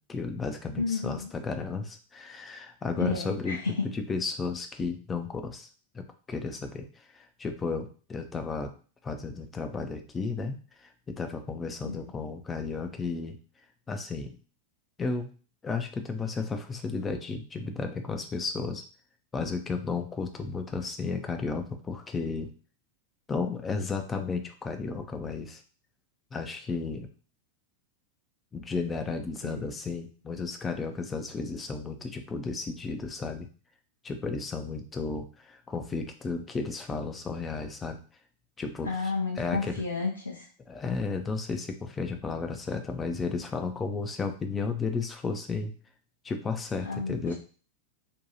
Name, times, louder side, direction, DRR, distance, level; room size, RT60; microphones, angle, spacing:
voice 1, 0.1-3.6 3.9-5.7 5.9-6.9 7.1-8.7 9.0-13.4 13.9-14.4 15.0-15.3 15.6-18.8 19.3-22.5 23.3-25.6 26.3-27.1 28.5-33.5 34.0-38.0 38.6-38.9 39.4-39.7 40.7-45.7 46.2-47.3, left 4 dB, 15° left, 5 dB, 0.4 m, -33 dB
voice 2, 0.8-1.3 3.0-3.7 11.8-12.0 29.4-29.7 38.8-40.4 46.9-47.3, left 4 dB, 75° left, -2 dB, 0.5 m, -32 dB
2.6 x 2.2 x 2.9 m, 0.38 s
figure-of-eight pair, 90°, 0 cm